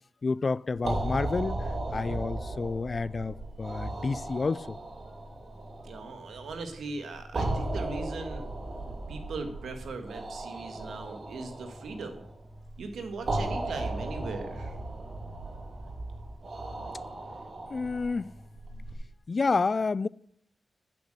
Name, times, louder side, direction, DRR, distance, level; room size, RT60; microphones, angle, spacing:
voice 1, 0.2-4.8 17.7-18.3 19.3-20.1, left 4 dB, 50° left, 0.4 m, -29 dB
sound 1, 0.8-18.9, right 2 dB, 65° right, 2.8 m, -36 dB
voice 2, 1.9-2.2 5.8-8.5 9.1-12.2 12.8-15.1, right 3 dB, 90° right, 1.8 m, -39 dB
8.8 x 8.4 x 7.7 m
cardioid pair, 55°, 0 cm